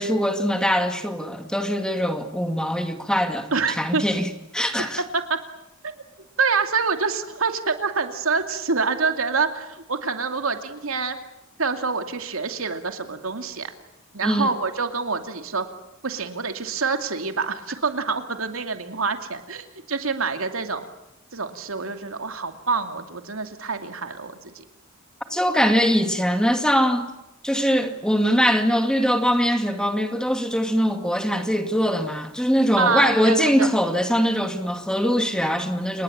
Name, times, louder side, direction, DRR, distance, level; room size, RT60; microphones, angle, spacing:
voice 1, 0.0-5.0 14.2-14.5 25.3-27.1 27.4-36.0, equal, 5° left, 2.3 m, -22 dB
voice 2, 3.5-4.0 5.1-5.4 5.8-5.9 6.4-11.2 11.6-13.7 14.1-15.7 16.0-20.9 21.3-24.6 32.8-33.7, right 4 dB, 90° right, 2.6 m, -26 dB
29.5 x 20.0 x 8.7 m
head